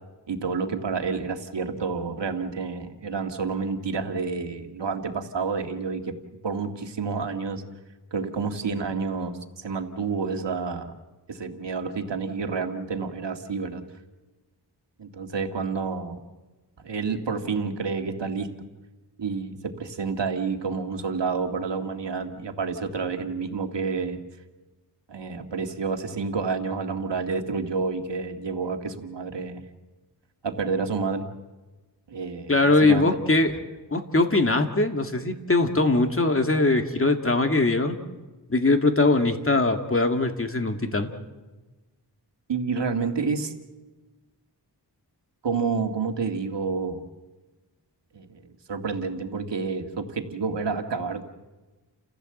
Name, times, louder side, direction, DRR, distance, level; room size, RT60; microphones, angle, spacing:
voice 1, 0.3-6.1 6.4-7.6 8.1-10.9 11.3-13.8 15.0-16.2 16.8-18.7 19.2-24.2 25.1-29.6 30.4-31.3 32.1-33.1 42.5-43.5 45.4-47.0 48.1-51.2, right 5 dB, 90° right, 6 dB, 2.0 m, -29 dB
voice 2, 32.5-33.5 33.9-38.0 38.5-41.1, left 2 dB, 30° left, 6 dB, 2.2 m, -21 dB
30.0 x 15.5 x 7.9 m, 1.2 s
wide cardioid pair, 80°, 41 cm